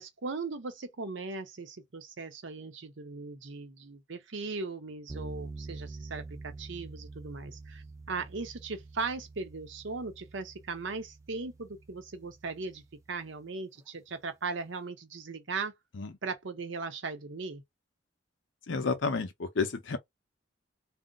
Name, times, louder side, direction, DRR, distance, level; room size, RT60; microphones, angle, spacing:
voice 1, 0.0-12.8 13.1-15.7 16.2-17.6, right 4 dB, 70° right, 0.7 m, -38 dB
sound 1, 5.1-13.3, right 3 dB, 15° right, 0.3 m, -46 dB
voice 2, 18.7-20.0, left 4 dB, 70° left, 0.7 m, -31 dB
2.5 x 2.0 x 3.8 m
head